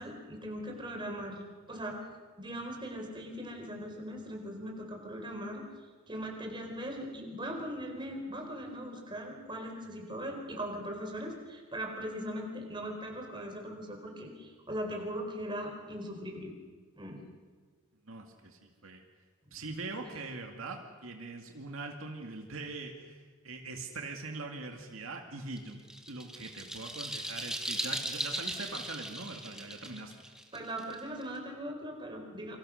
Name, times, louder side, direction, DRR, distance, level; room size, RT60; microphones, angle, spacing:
voice 1, 0.0-2.0 2.4-5.7 6.1-16.5 17.0-17.2 20.0-20.2 30.5-32.6, equal, 20° right, 2 dB, 4.4 m, -40 dB
voice 2, 18.0-19.0 19.5-25.8 26.1-30.2, right 3 dB, 70° right, 3 dB, 2.3 m, -42 dB
sound 1, 25.6-31.4, right 1 dB, 5° right, 2.3 m, -38 dB
29.0 x 25.5 x 6.5 m, 1.5 s
head